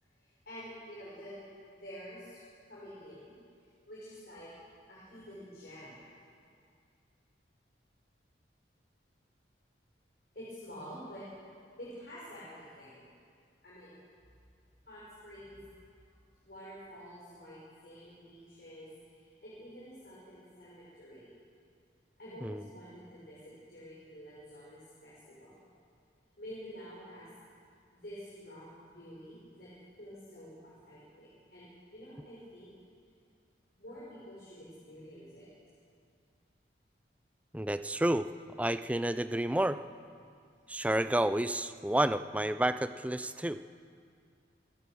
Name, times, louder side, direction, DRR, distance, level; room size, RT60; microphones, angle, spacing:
voice 1, 0.2-3.3 3.6-4.5 4.9-6.0 10.3-11.3 11.7-13.1 13.6-14.0 14.8-15.6 16.4-21.3 22.2-25.6 26.4-27.3 27.9-29.7 30.0-32.7 33.8-35.5, equal, 60° left, -8 dB, 6.8 m, -49 dB
voice 2, 37.5-38.3 38.6-39.8 40.7-43.6, right 1 dB, 10° right, 12 dB, 0.5 m, -30 dB
29.0 x 15.5 x 6.4 m, 2.3 s
head